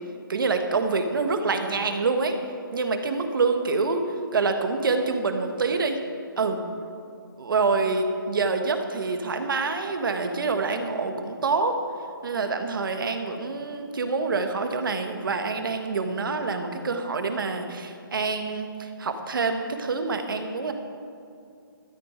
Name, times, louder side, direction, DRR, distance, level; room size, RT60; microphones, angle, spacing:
voice 1, 0.3-2.4 2.7-4.1 4.3-6.0 6.4-6.6 7.4-11.8 12.2-20.7, right 4 dB, 65° right, 6 dB, 1.4 m, -26 dB
13.0 x 9.6 x 5.0 m, 2.5 s
hypercardioid pair, 160°, 12 cm